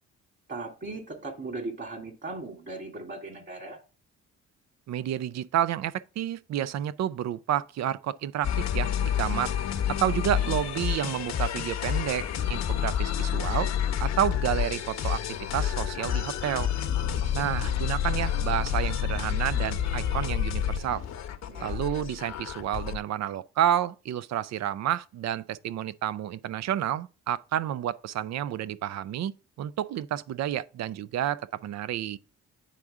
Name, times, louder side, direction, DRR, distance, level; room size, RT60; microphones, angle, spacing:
voice 1, 0.5-3.8 10.4-10.6 21.5-21.9, right 3 dB, 40° right, 2.4 m, -38 dB
voice 2, 4.9-9.5 9.9-13.7 14.0-15.2 15.5-16.7 17.3-21.0 21.6-29.3 29.6-32.2, right 11 dB, 60° right, 0.5 m, -30 dB
sound 1, 8.4-23.0, left 9 dB, 60° left, 0.9 m, -29 dB
9.2 x 3.7 x 3.5 m
cardioid pair, 90°, 30 cm